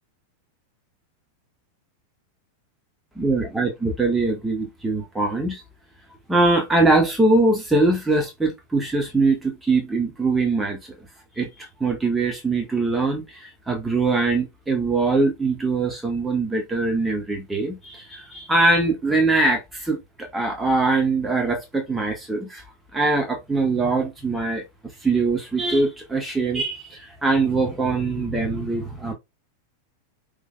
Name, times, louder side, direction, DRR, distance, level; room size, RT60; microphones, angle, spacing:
voice 1, 3.1-5.6 6.3-11.0 11.4-22.6 22.9-24.6 25.0-29.1, right 3 dB, 10° right, 1.5 m, -22 dB
6.1 x 3.5 x 2.3 m
figure-of-eight pair, 90°, 0 cm